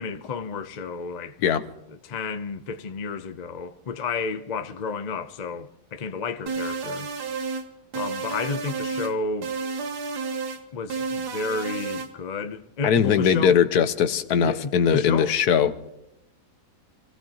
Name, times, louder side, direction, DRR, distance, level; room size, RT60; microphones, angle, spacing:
voice 1, 0.0-1.4 2.0-7.1 7.9-9.5 10.7-13.6 14.4-15.4, left 4 dB, 50° left, 0.5 m, -31 dB
sound 1, 6.5-7.7 7.9-9.1 9.4-10.6 10.9-12.1, right 4 dB, 80° right, 1.7 m, -31 dB
voice 2, 12.8-15.9, left 8 dB, 75° left, 1.3 m, -20 dB
26.5 x 16.5 x 2.9 m
omnidirectional pair, 1.7 m